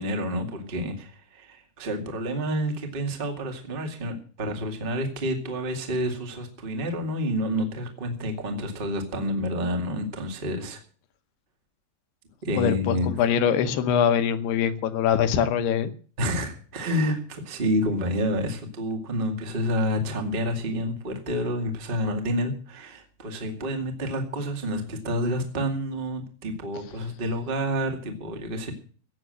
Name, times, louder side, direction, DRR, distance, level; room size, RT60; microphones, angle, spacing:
voice 1, 0.0-10.8 12.4-13.1 16.2-28.7, equal, 30° right, 4 dB, 0.9 m, -29 dB
voice 2, 12.6-15.9, left 8 dB, 75° left, 11 dB, 2.9 m, -23 dB
17.0 x 7.5 x 7.8 m, 0.43 s
omnidirectional pair, 5.0 m